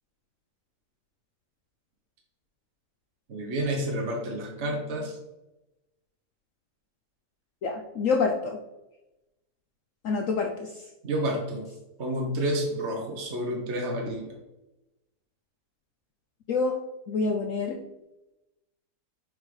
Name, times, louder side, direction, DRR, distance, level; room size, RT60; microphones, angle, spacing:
voice 1, 3.3-5.2 11.0-11.7 12.0-14.3, right 1 dB, 45° right, 1 dB, 1.2 m, -29 dB
voice 2, 7.6-8.6 10.0-10.7 16.5-16.8 17.1-17.8, left 4 dB, 60° left, 3 dB, 0.9 m, -27 dB
5.4 x 5.1 x 4.8 m, 0.97 s
omnidirectional pair, 1.8 m